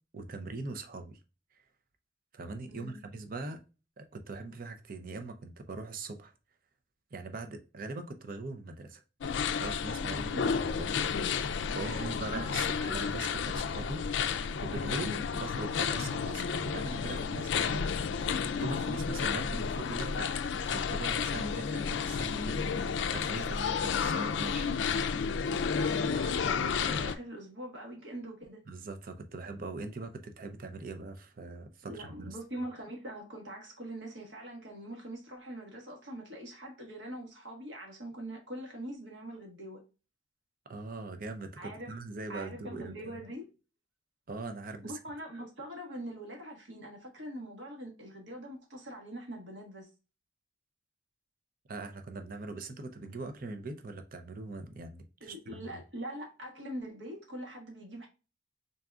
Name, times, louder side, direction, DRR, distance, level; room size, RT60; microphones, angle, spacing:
voice 1, 0.1-1.2 2.3-3.6 4.0-6.3 7.1-9.0 9.5-11.4 11.7-14.3 14.6-20.4 20.7-24.7 28.7-32.4 40.7-43.1 44.3-45.0 51.7-55.8, right 3 dB, 45° right, 0.6 m, -41 dB
voice 2, 2.7-3.0 10.3-10.6 11.8-12.4 25.8-28.6 31.9-39.8 41.6-41.9 42.3-43.5 44.8-49.9 55.2-58.1, right 1 dB, 65° right, 1.4 m, -43 dB
sound 1, 9.2-27.2, left 6 dB, 65° left, 0.4 m, -31 dB
3.9 x 3.5 x 2.4 m
head